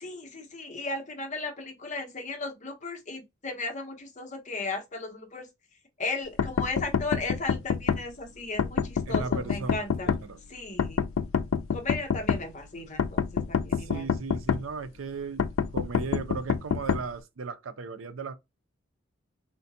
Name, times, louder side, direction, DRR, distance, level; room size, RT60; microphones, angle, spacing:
voice 1, 0.0-5.5 6.0-10.1 10.5-11.1 11.7-14.1, left 3 dB, 35° left, 0.7 m, -36 dB
sound 1, 6.4-8.0 8.6-10.2 10.8-12.4 13.0-14.6 15.4-17.0, left 6 dB, 80° left, 0.4 m, -26 dB
voice 2, 9.1-10.4 13.8-15.5 15.7-18.3, right 4 dB, 85° right, 0.5 m, -36 dB
3.7 x 2.2 x 2.6 m
head